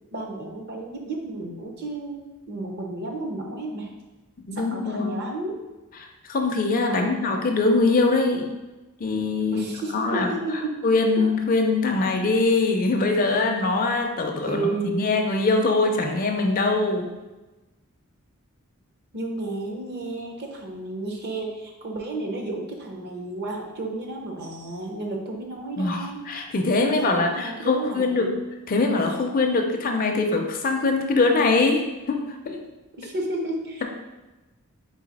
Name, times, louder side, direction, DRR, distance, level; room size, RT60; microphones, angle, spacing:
voice 1, 0.1-3.9 4.5-5.6 6.9-7.1 9.5-10.8 11.2-11.3 14.4-15.1 19.1-26.2 26.7-28.4 33.0-33.8, right 2 dB, 50° right, 1 dB, 0.7 m, -32 dB
voice 2, 4.5-5.1 6.0-8.5 9.0-10.3 10.8-17.1 25.8-28.3 28.7-32.6, left 3 dB, 40° left, 3 dB, 0.4 m, -23 dB
3.9 x 2.7 x 4.0 m, 1.1 s
head